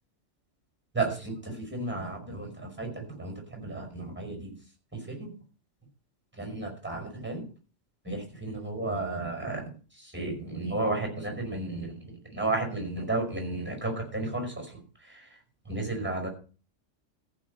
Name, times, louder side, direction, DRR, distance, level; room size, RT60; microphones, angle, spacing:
voice 1, 0.9-4.5 5.1-5.3 6.4-7.4 8.0-9.7 10.1-12.0 12.3-14.5 15.7-16.3, right 2 dB, 10° right, 3 dB, 5.1 m, -33 dB
14.5 x 5.7 x 7.7 m, 0.37 s
omnidirectional pair, 1.3 m